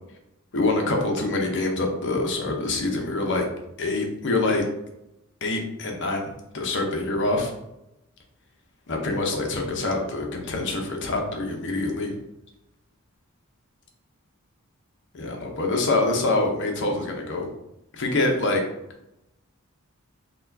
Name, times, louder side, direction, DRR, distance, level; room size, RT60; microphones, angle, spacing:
voice 1, 0.5-3.5 3.8-4.7 5.4-7.5 8.9-12.2 15.1-17.5 17.9-18.6, left 2 dB, 55° left, 2 dB, 0.7 m, -25 dB
4.1 x 2.3 x 2.7 m, 0.86 s
head